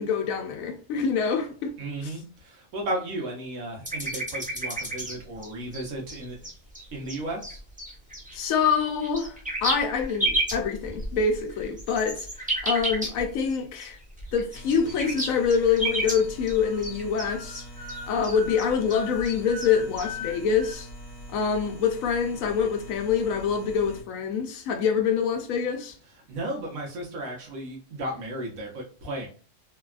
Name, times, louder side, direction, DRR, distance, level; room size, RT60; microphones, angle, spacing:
voice 1, 0.0-1.8 8.3-14.0 14.3-17.6 18.1-20.9 21.3-25.9, left 6 dB, 80° left, 1.0 m, -26 dB
voice 2, 1.8-6.5 6.9-7.6 26.3-29.3, right 1 dB, 80° right, 1.4 m, -34 dB
sound 1, 3.8-5.2 5.4-8.3 8.8-13.5 13.8-13.9 14.2-20.7, right 1 dB, 10° right, 0.4 m, -32 dB
sound 2, 14.5-24.0, right 1 dB, 20° left, 0.8 m, -43 dB
3.4 x 2.3 x 2.3 m
omnidirectional pair, 1.4 m